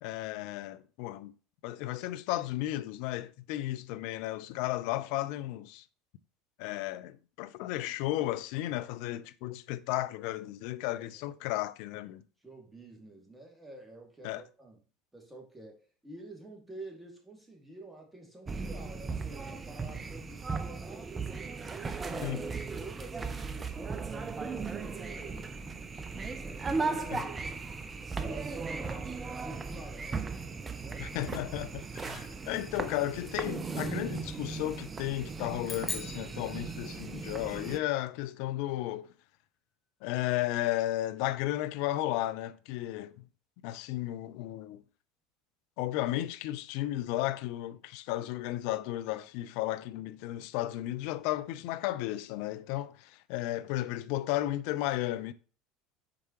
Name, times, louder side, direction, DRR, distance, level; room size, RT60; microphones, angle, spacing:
voice 1, 0.0-1.3 1.6-5.8 6.6-12.2 14.2-14.4 22.2-22.4 26.9-27.2 31.0-39.1 40.0-43.3 43.6-44.8 45.8-55.3, left 15 dB, 60° left, 0.4 m, -34 dB
voice 2, 11.0-11.3 12.4-14.8 15.1-21.2 21.8-22.4 22.7-25.5 26.3-27.7 28.1-31.1 32.2-33.0, right 2 dB, 10° right, 2.3 m, -49 dB
sound 1, 18.5-37.8, right 4 dB, 25° right, 0.7 m, -37 dB
sound 2, 35.6-37.3, left 4 dB, 25° left, 1.3 m, -40 dB
7.5 x 4.8 x 3.0 m
figure-of-eight pair, 75°, 0 cm